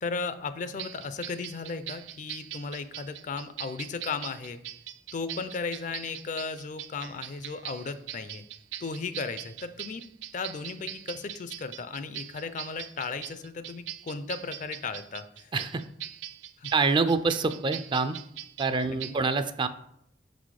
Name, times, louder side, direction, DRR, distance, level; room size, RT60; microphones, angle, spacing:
voice 1, 0.0-4.6 5.1-8.4 8.8-10.0 10.3-15.5 16.6-16.7 18.9-19.0 19.3-19.4, left 4 dB, 45° left, 12 dB, 0.4 m, -35 dB
sound 1, 0.8-19.1, right 12 dB, 90° right, 0.4 m, -41 dB
voice 2, 15.5-15.8 16.7-18.2 18.6-19.7, right 4 dB, 25° right, 11 dB, 0.4 m, -26 dB
6.1 x 4.1 x 4.7 m, 0.72 s
head